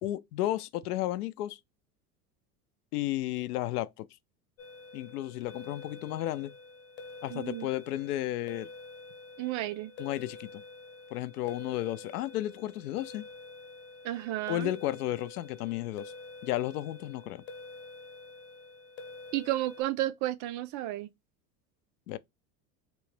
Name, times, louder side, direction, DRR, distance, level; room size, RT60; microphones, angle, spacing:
voice 1, 0.0-1.6 2.9-4.1 4.9-6.5 7.2-8.7 10.0-10.6 11.1-13.3 14.5-16.1 16.4-17.4 22.1-22.2, left 15 dB, 80° left, 0.5 m, -33 dB
sound 1, 4.6-19.8, left 3 dB, 30° left, 1.0 m, -48 dB
voice 2, 7.3-7.7 9.4-9.9 14.0-14.7 19.3-21.1, right 15 dB, 40° right, 0.4 m, -32 dB
3.1 x 3.0 x 3.2 m
hypercardioid pair, 90°, 45 cm